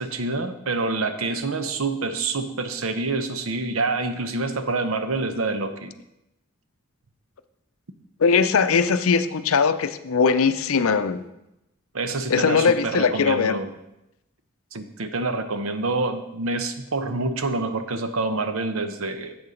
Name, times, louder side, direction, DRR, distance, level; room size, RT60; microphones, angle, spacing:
voice 1, 0.0-5.9 11.9-13.7 14.7-19.4, right 3 dB, 80° right, 9 dB, 0.8 m, -27 dB
voice 2, 8.2-11.2 12.3-13.6, left 5 dB, 80° left, 12 dB, 0.5 m, -20 dB
7.9 x 6.8 x 5.1 m, 0.88 s
head